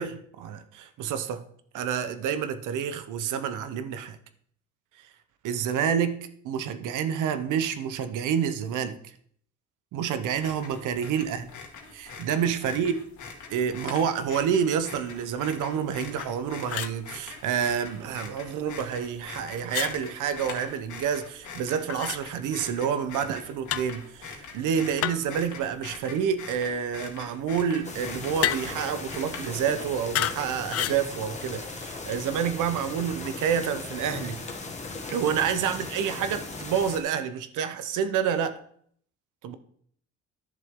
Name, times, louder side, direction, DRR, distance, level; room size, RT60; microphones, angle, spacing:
voice 1, 0.0-1.4 1.7-4.2 5.4-9.0 9.9-11.5 11.9-13.0 13.5-34.4 35.1-38.6 39.4-39.6, right 8 dB, 85° right, 0.9 m, -28 dB
sound 1, 10.3-29.8, left 5 dB, 75° left, 2.0 m, -43 dB
sound 2, 16.2-16.3 16.7-17.0 19.7-20.0 21.9-22.2 23.7-24.0 25.0-25.4 28.4-28.8 30.1-30.4 30.7-31.0, left 11 dB, 55° left, 0.5 m, -29 dB
sound 3, 27.8-37.0, left 3 dB, 25° left, 1.6 m, -38 dB
11.0 x 6.8 x 3.7 m
cardioid pair, 90°, 30 cm